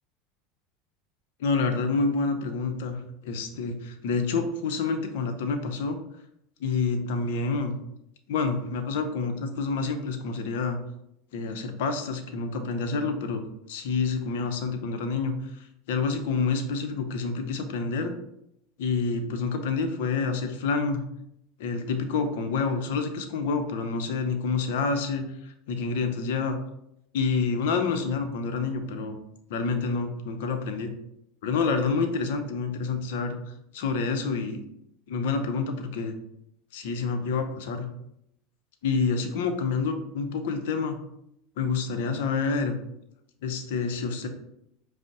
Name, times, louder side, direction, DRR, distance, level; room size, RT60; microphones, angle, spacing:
voice 1, 1.4-6.0 6.6-7.7 8.3-10.8 11.3-18.1 18.8-21.0 21.6-26.6 27.1-29.2 29.5-30.9 31.4-33.4 33.7-34.6 35.1-36.2 36.7-37.9 38.8-41.0 41.6-42.8 43.4-44.3, left 4 dB, 65° left, 7 dB, 0.6 m, -28 dB
5.1 x 2.1 x 4.8 m, 0.78 s
hypercardioid pair, 80°, 0 cm